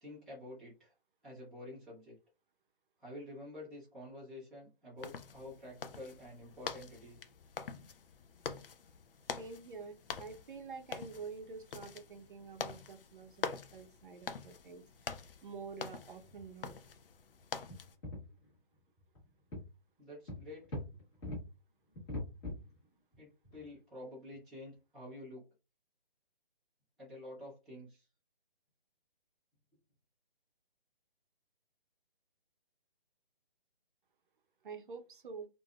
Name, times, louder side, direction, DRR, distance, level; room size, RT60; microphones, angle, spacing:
voice 1, 0.0-0.9 1.2-2.2 3.0-7.2 20.0-20.8 23.2-25.4 27.0-28.1, left 1 dB, ahead, -13 dB, 0.5 m, -49 dB
sound 1, 5.0-17.9, left 6 dB, 70° left, 0.5 m, -45 dB
voice 2, 9.4-13.4 13.7-14.8 15.4-16.8 34.6-35.5, right 5 dB, 60° right, 6 dB, 0.6 m, -47 dB
sound 2, 15.7-15.9 16.2-16.4 16.8-16.9 17.7-18.5 19.0-19.2 19.5-19.6 20.3-21.4 22.0-22.8 23.1-23.2 23.4-23.7 24.3-24.4, left 1 dB, 30° left, 1.4 m, -42 dB
3.2 x 2.6 x 2.2 m, 0.28 s
figure-of-eight pair, 145°, 29 cm